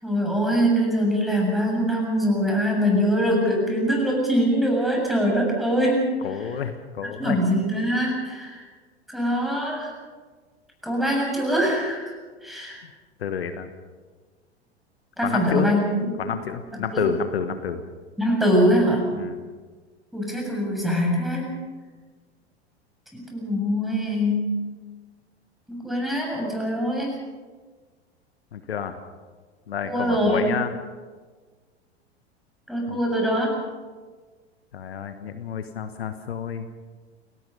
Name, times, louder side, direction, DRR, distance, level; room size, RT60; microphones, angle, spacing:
voice 1, 0.0-6.5 7.2-8.7 9.1-9.9 10.8-12.1 12.4-12.8 15.2-16.3 16.9-17.1 18.2-19.0 20.1-21.6 23.1-24.6 25.7-27.1 29.8-30.5 32.7-33.5, equal, ahead, -1 dB, 7.4 m, -23 dB
voice 2, 6.2-7.4 13.2-13.7 15.2-15.7 16.2-17.8 19.1-19.4 28.5-29.0 29.7-30.7 32.9-33.0 34.7-36.7, left 7 dB, 65° left, 9 dB, 1.4 m, -29 dB
29.0 x 18.5 x 5.4 m, 1.4 s
figure-of-eight pair, 85°, 33 cm